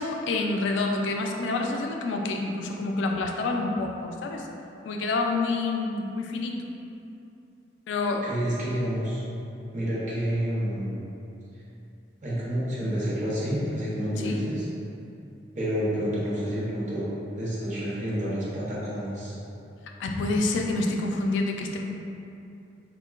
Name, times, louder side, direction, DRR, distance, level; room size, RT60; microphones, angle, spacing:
voice 1, 0.0-4.5 4.8-6.7 7.9-8.3 14.2-14.4 20.0-21.8, left 3 dB, 90° left, 2 dB, 0.3 m, -28 dB
voice 2, 8.2-9.2 9.7-11.0 12.2-14.7 15.5-17.1 17.3-19.4, equal, 45° right, -8 dB, 0.7 m, -29 dB
3.6 x 2.1 x 2.3 m, 2.7 s
head